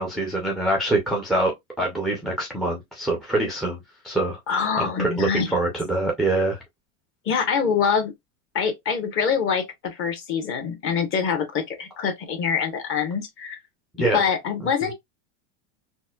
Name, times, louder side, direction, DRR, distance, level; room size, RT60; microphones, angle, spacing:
voice 1, 0.0-3.8 4.0-4.4 4.8-6.6 14.0-14.2, right 2 dB, ahead, 0.4 m, -24 dB
voice 2, 4.5-5.5 7.3-8.1 8.5-13.6 14.1-14.9, left 6 dB, 35° left, 0.9 m, -25 dB
4.1 x 2.2 x 2.2 m
supercardioid pair, 140°, 38 cm